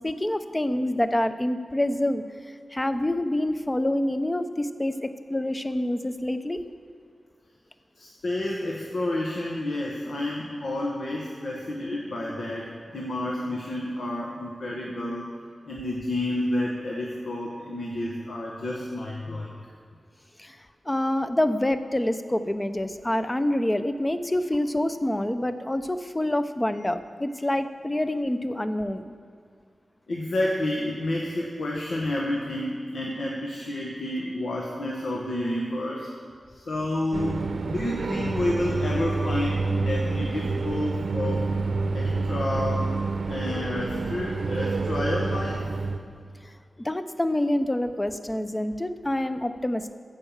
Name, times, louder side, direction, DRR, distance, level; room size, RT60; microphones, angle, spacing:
voice 1, 0.0-6.6 20.4-20.6 20.9-29.2 46.8-49.9, left 1 dB, 15° left, 10 dB, 0.5 m, -27 dB
voice 2, 8.0-15.3 15.6-19.5 30.1-36.1 36.5-41.5 41.9-42.9 43.3-45.7, left 1 dB, 80° left, -2 dB, 1.2 m, -30 dB
sound 1, 37.1-46.0, right 3 dB, 80° right, 0.7 m, -28 dB
14.0 x 5.5 x 7.3 m, 2.1 s
wide cardioid pair, 120°, 0 cm